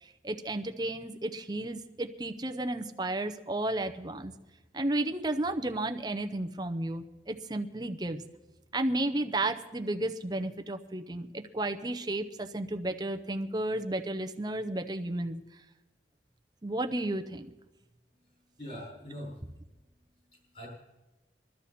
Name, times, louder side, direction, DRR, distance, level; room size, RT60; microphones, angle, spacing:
voice 1, 0.0-4.3 4.7-8.2 8.7-15.4 16.6-17.5, right 1 dB, 20° right, 7 dB, 0.7 m, -33 dB
voice 2, 18.1-19.6 20.1-20.7, equal, 35° left, -5 dB, 5.8 m, -45 dB
22.0 x 12.5 x 4.3 m, 1.1 s
head